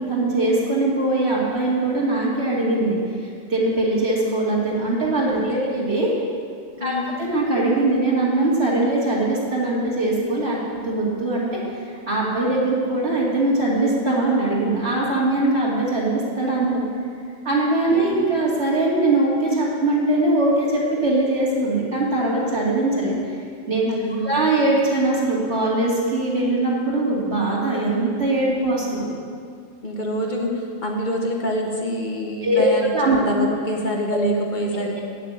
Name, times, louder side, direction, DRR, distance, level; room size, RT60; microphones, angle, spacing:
voice 1, 0.1-6.1 6.8-6.9 7.2-10.6 10.8-16.8 17.4-23.1 23.7-23.9 24.2-29.1 32.4-32.7 32.9-33.2 34.1-34.2 34.7-35.0, right 2 dB, 75° right, -5 dB, 2.7 m, -21 dB
voice 2, 6.8-7.2 17.9-18.2 23.9-24.3 29.8-35.0, equal, 45° left, 0 dB, 1.4 m, -26 dB
8.7 x 6.7 x 8.6 m, 2.2 s
omnidirectional pair, 1.1 m